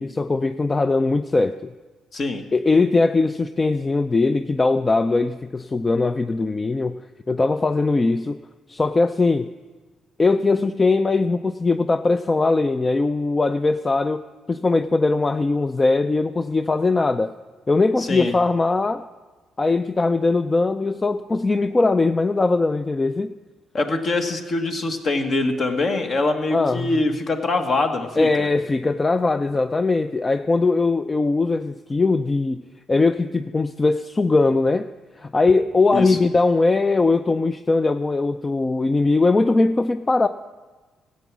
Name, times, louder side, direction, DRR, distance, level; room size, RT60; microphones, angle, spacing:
voice 1, 0.0-1.7 2.5-8.4 8.7-9.5 10.2-14.2 14.5-17.3 17.7-19.0 19.6-23.3 26.5-27.0 28.2-32.6 32.9-34.9 35.2-40.3, left 3 dB, 25° left, 10 dB, 0.4 m, -20 dB
voice 2, 2.1-2.4 18.0-18.3 23.7-28.5 35.9-36.2, left 2 dB, 50° left, 5 dB, 1.4 m, -23 dB
14.5 x 8.4 x 6.1 m, 1.3 s
cardioid pair, 90°, 0 cm